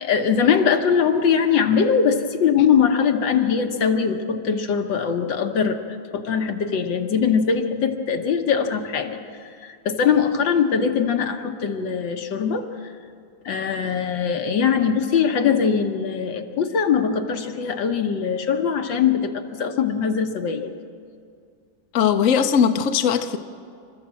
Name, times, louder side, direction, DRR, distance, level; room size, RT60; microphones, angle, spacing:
voice 1, 0.0-5.8 6.1-9.2 9.4-12.9 13.5-20.7, left 6 dB, 70° left, 5 dB, 1.8 m, -21 dB
voice 2, 21.9-23.4, left 7 dB, 55° left, 7 dB, 1.0 m, -19 dB
28.5 x 13.5 x 7.6 m, 2.3 s
omnidirectional pair, 2.1 m